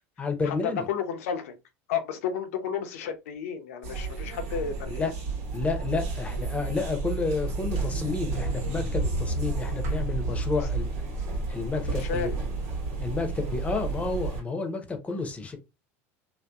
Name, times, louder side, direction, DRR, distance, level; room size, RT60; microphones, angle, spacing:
voice 1, 0.2-0.9 4.9-5.1 5.5-10.9 11.5-12.3 13.0-15.6, left 3 dB, 15° left, 0.6 m, -30 dB
voice 2, 0.9-1.6 1.9-5.1 11.9-12.4 15.1-15.2, left 7 dB, 85° left, 0.6 m, -32 dB
sound 1, 3.8-14.4, right 3 dB, 80° right, 1.2 m, -31 dB
2.7 x 2.1 x 2.2 m
supercardioid pair, 105°, 7 cm